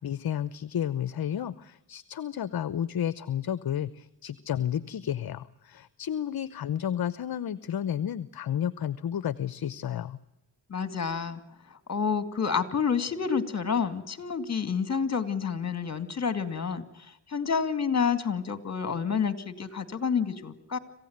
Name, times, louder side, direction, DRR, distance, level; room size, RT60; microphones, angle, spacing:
voice 1, 0.0-10.2, left 9 dB, 55° left, 16 dB, 0.9 m, -31 dB
voice 2, 10.7-11.4 11.9-20.8, left 6 dB, 35° left, 12 dB, 2.2 m, -29 dB
26.5 x 16.0 x 9.3 m, 0.95 s
cardioid pair, 95°, 45 cm